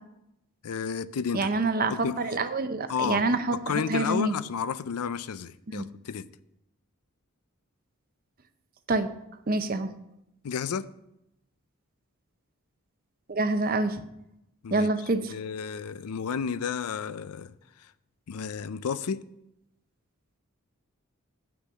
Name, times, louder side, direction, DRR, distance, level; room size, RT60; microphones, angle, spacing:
voice 1, 0.6-2.2 2.9-3.4 3.7-6.3 10.4-10.9 14.6-14.9 15.3-17.5 18.3-19.2, left 6 dB, 85° left, 0.4 m, -32 dB
voice 2, 1.3-4.4 5.7-5.8 8.9-9.1 9.5-9.9 13.3-14.0 14.7-15.3, right 3 dB, 40° right, 0.6 m, -27 dB
8.2 x 6.2 x 5.6 m
head